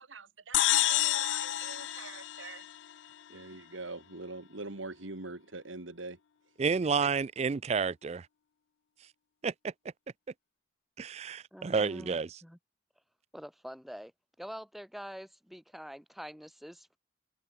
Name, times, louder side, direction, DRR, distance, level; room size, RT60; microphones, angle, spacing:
voice 1, 0.0-2.6 3.3-6.2, right 3 dB, 80° right, 2.2 m, -44 dB
sound 1, 0.5-3.1, left 15 dB, 70° left, 0.4 m, -29 dB
voice 2, 6.6-8.2 9.4-9.5 11.0-12.3, right 5 dB, 35° right, 0.3 m, -30 dB
voice 3, 11.5-12.2 12.4-12.6 13.3-14.1 14.4-17.0, equal, ahead, 2.7 m, -45 dB
head